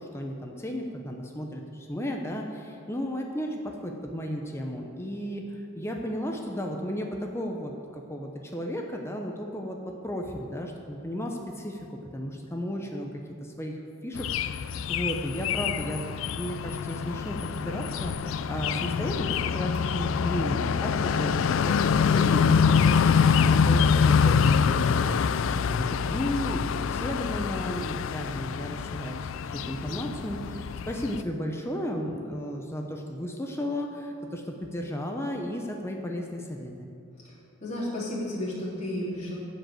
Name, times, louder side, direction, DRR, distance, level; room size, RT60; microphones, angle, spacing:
voice 1, 0.0-5.4 5.8-9.8 10.0-11.9 12.1-13.1 13.4-13.8 14.0-16.0 16.4-29.2 29.7-36.9, equal, 10° left, 1 dB, 0.7 m, -34 dB
sound 1, 14.2-31.2, left 6 dB, 60° left, 0.3 m, -25 dB
voice 2, 37.6-39.3, left 1 dB, 30° left, -8 dB, 3.4 m, -32 dB
14.5 x 5.2 x 7.7 m, 2.6 s
head